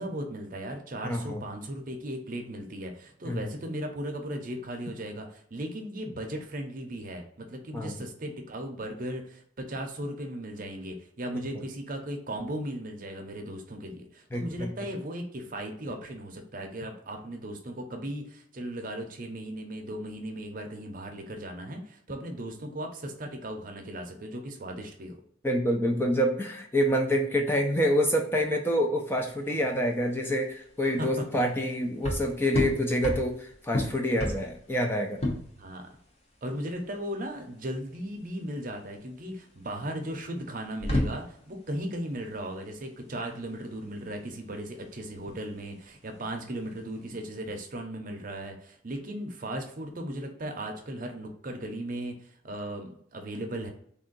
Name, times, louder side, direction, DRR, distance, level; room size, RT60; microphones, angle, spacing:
voice 1, 0.0-25.2 30.8-31.4 35.6-35.9 36.4-53.7, right 1 dB, 45° right, 3 dB, 0.6 m, -37 dB
voice 2, 1.0-1.4 3.2-3.5 7.7-7.9 14.3-14.7 25.4-35.2, equal, 10° left, 2 dB, 0.4 m, -27 dB
sound 1, 29.1-47.3, left 1 dB, 35° left, 0.8 m, -35 dB
3.5 x 2.5 x 3.8 m, 0.65 s
head